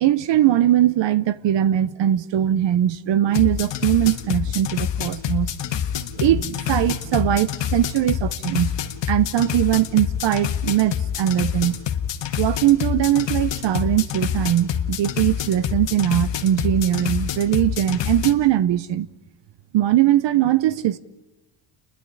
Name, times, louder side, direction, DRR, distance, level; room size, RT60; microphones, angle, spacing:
voice 1, 0.0-5.5 6.2-8.7 9.1-11.8 12.4-19.1 19.7-21.0, right 12 dB, 60° right, 0.7 m, -20 dB
sound 1, 3.3-18.3, left 9 dB, 60° left, 1.5 m, -26 dB
28.5 x 11.0 x 9.9 m
cardioid pair, 100°, 50 cm